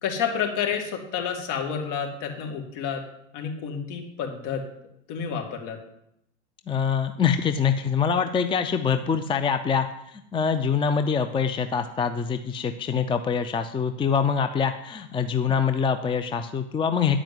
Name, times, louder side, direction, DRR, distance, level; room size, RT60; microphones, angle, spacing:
voice 1, 0.0-3.0 3.3-4.6 5.1-5.8, left 7 dB, 55° left, 3 dB, 2.5 m, -29 dB
voice 2, 6.7-17.2, left 6 dB, 15° left, 9 dB, 0.5 m, -24 dB
10.5 x 4.9 x 7.9 m, 0.77 s
supercardioid pair, 110°, 35 cm